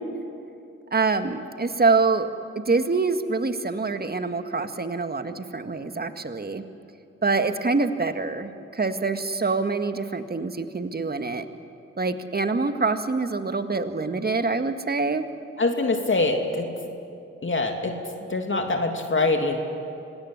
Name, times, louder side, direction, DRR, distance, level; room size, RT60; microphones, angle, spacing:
voice 1, 0.9-2.3 2.7-6.6 7.2-11.4 12.0-15.2, right 4 dB, 30° right, 8 dB, 1.8 m, -25 dB
voice 2, 15.6-16.7 17.4-18.0 18.3-19.6, left 3 dB, 35° left, 3 dB, 2.8 m, -24 dB
25.0 x 17.5 x 10.0 m, 2.6 s
hypercardioid pair, 40°, 32 cm